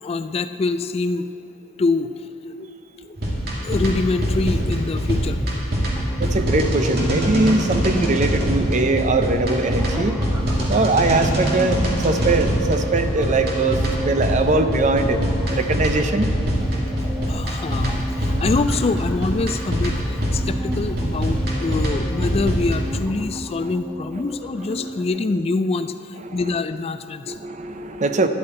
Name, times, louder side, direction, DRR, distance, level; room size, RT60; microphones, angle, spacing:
voice 1, 0.0-1.3 1.8-2.2 2.6-2.7 3.0-3.2 3.6-5.4 10.0-10.1 17.3-27.4, left 3 dB, 30° left, 11 dB, 0.3 m, -25 dB
sound 1, 3.2-22.8, equal, 55° right, 2.2 m, -23 dB
sound 2, 5.9-25.1, equal, 5° right, 1.1 m, -34 dB
voice 2, 6.2-10.2 10.7-15.2 15.5-16.3 23.2-23.3 23.6-23.7 24.2-24.3 24.8-24.9 26.2-26.5 27.3-28.3, right 3 dB, 40° right, 8 dB, 0.6 m, -21 dB
12.0 x 11.5 x 4.4 m, 3.0 s
head